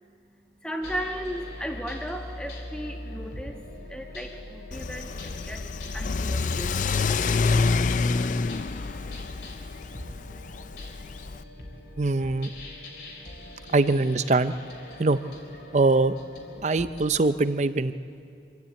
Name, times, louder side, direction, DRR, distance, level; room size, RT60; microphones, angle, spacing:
voice 1, 0.0-3.6 3.9-7.4, equal, 5° left, 3 dB, 1.4 m, -38 dB
sound 1, 0.8-17.3, left 1 dB, 65° left, 3.6 m, -42 dB
Car / Accelerating revving vroom, 4.7-11.4, left 4 dB, 45° left, 0.4 m, -27 dB
voice 2, 12.0-12.5 13.7-14.5 15.0-15.2 15.7-16.1 16.6-17.9, right 3 dB, 40° right, 12 dB, 0.6 m, -22 dB
25.5 x 13.0 x 8.2 m, 2.6 s
head